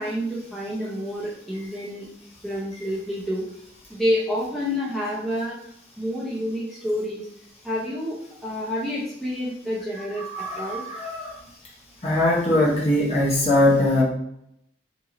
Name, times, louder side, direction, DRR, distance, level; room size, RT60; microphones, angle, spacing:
voice 1, 0.0-2.1 2.4-3.4 3.9-5.6 6.0-7.3 7.6-8.2 8.4-10.8, equal, ahead, -8 dB, 0.8 m, -28 dB
voice 2, 10.3-11.3 12.0-14.0, left 1 dB, 30° left, -4 dB, 0.9 m, -21 dB
3.0 x 2.7 x 3.7 m, 0.73 s
head